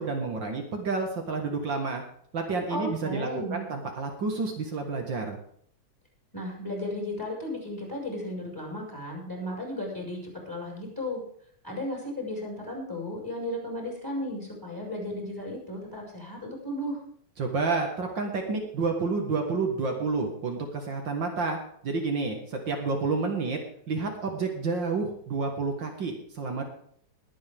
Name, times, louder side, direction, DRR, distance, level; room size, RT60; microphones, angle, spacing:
voice 1, 0.0-2.0 2.3-5.4 17.4-21.6 21.8-23.6 23.9-26.6, right 4 dB, 65° right, 2 dB, 2.5 m, -29 dB
voice 2, 2.7-3.7 6.3-10.2 10.5-11.2 11.6-17.0, left 1 dB, 10° left, -1 dB, 5.7 m, -34 dB
21.0 x 8.6 x 3.6 m, 0.65 s
omnidirectional pair, 2.2 m